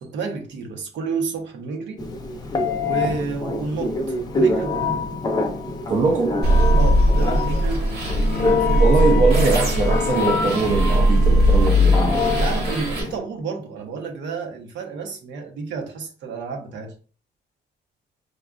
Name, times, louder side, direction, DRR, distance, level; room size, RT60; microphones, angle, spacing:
voice 1, 0.0-2.0 2.8-5.0 6.8-9.0 12.3-16.9, right 4 dB, 80° right, 0.9 m, -30 dB
Telephone, 2.0-13.2, left 3 dB, 20° left, 0.6 m, -26 dB
voice 2, 5.9-6.4 8.8-12.3, right 3 dB, 45° right, 0.6 m, -21 dB
sound 1, 6.4-13.0, equal, 60° right, 1.1 m, -19 dB
Bowed string instrument, 8.1-12.2 13.4-13.5, left 9 dB, 65° left, 0.4 m, -33 dB
4.9 x 2.3 x 2.4 m
cardioid pair, 155°, 18 cm